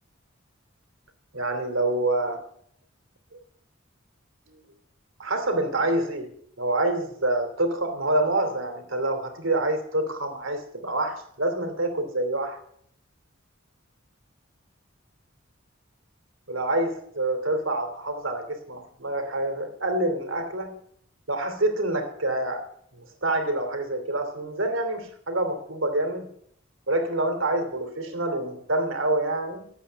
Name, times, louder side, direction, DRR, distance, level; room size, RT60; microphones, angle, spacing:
voice 1, 1.3-2.5 3.3-3.4 4.5-4.7 5.2-12.6 16.5-20.8 21.3-22.7 23.0-26.3 26.9-29.7, right 2 dB, 80° right, 6 dB, 2.8 m, -27 dB
13.5 x 8.2 x 7.9 m, 0.66 s
head